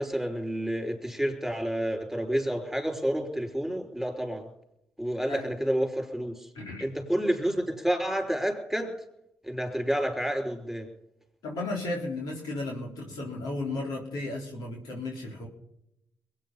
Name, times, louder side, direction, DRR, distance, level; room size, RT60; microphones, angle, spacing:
voice 1, 0.0-4.5 5.0-6.5 6.8-8.9 9.4-10.9, equal, ahead, 3 dB, 5.5 m, -29 dB
voice 2, 6.6-6.9 11.4-15.5, left 2 dB, 75° left, -1 dB, 3.7 m, -34 dB
22.0 x 9.4 x 5.7 m, 0.82 s
hypercardioid pair, 45°, 7 cm